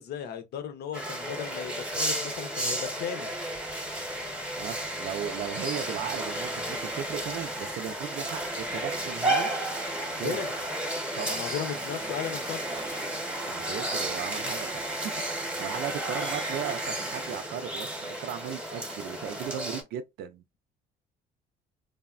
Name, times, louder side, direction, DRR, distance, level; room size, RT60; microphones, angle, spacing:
voice 1, 0.0-3.3 10.2-10.5 11.3-12.7, left 8 dB, 70° left, 0.7 m, -36 dB
sound 1, 0.9-19.8, right 1 dB, 5° right, 0.9 m, -33 dB
voice 2, 4.5-9.5 10.2-10.4 11.2-11.5 13.5-20.4, right 9 dB, 70° right, 0.4 m, -36 dB
sound 2, 8.9-9.6 11.4-14.5 16.0-16.9 18.1-19.4, right 5 dB, 30° right, 0.6 m, -49 dB
3.3 x 2.1 x 2.4 m
cardioid pair, 110°, 17 cm